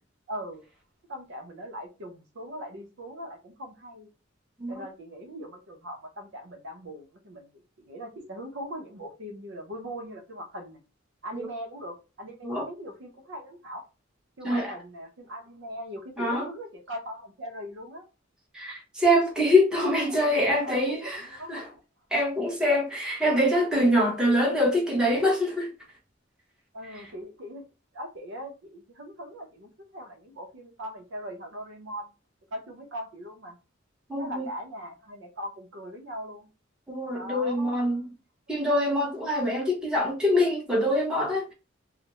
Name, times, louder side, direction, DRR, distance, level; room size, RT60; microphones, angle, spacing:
voice 1, 0.3-0.6 1.1-4.1 4.7-7.5 7.8-10.8 11.2-13.8 14.4-18.1 19.8-21.8 26.7-27.6 27.9-32.1 32.5-33.6 34.2-36.5 37.1-38.0, equal, 65° right, 0.7 m, -40 dB
voice 2, 16.2-16.5 18.5-21.2 21.5-21.7 22.1-25.7 26.9-27.0 34.1-34.5 36.9-38.0 38.5-41.5, left 1 dB, 5° right, 0.8 m, -24 dB
2.4 x 2.0 x 2.9 m
head